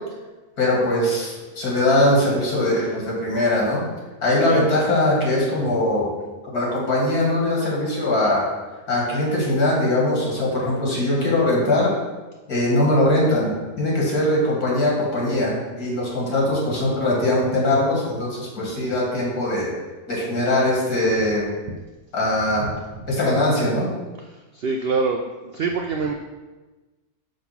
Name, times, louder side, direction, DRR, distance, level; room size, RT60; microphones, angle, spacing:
voice 1, 0.6-3.8 4.2-6.1 6.5-8.4 8.9-11.9 12.5-13.5 13.8-19.7 20.1-21.5 22.1-22.6 23.1-23.9, left 1 dB, 75° left, -4 dB, 2.6 m, -21 dB
voice 2, 24.2-26.1, right 4 dB, 90° right, 4 dB, 0.5 m, -25 dB
6.5 x 3.7 x 5.9 m, 1.2 s
omnidirectional pair, 1.6 m